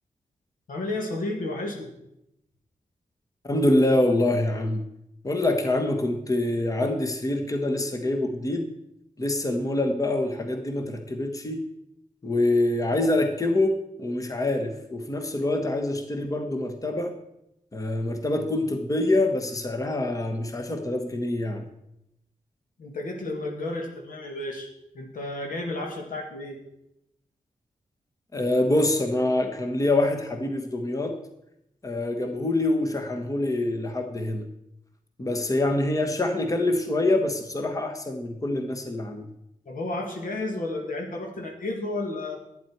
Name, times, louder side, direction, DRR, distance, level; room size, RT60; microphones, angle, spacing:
voice 1, 0.7-1.9 22.8-24.7 24.9-26.6 39.7-42.4, left 2 dB, 85° left, 2 dB, 2.1 m, -32 dB
voice 2, 3.4-4.8 5.2-8.7 9.2-11.6 12.2-17.1 17.7-21.6 28.3-31.2 31.8-34.5 35.2-39.2, left 1 dB, 25° left, 5 dB, 1.3 m, -25 dB
11.0 x 9.3 x 4.6 m, 0.83 s
wide cardioid pair, 100°, 14 cm